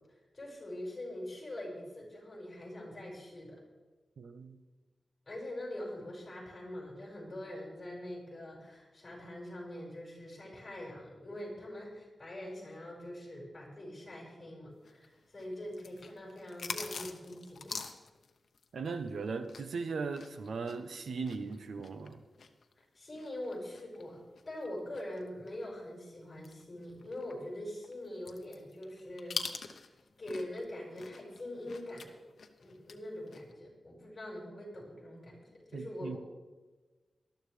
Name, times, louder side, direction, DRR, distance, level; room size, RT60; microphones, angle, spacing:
voice 1, 0.0-3.6 5.3-17.9 22.9-29.9 30.2-32.2 32.6-36.2, left 1 dB, 25° left, -4 dB, 5.5 m, -43 dB
voice 2, 4.2-4.6 18.7-22.2 35.7-36.2, right 4 dB, 80° right, 8 dB, 0.9 m, -38 dB
sound 1, 14.8-19.8 20.1-25.6 26.0-26.1 26.4-30.7 30.9-33.0 33.3-33.5, left 5 dB, 70° left, 0.9 m, -44 dB
19.5 x 13.0 x 3.4 m, 1.2 s
wide cardioid pair, 155°, 0 cm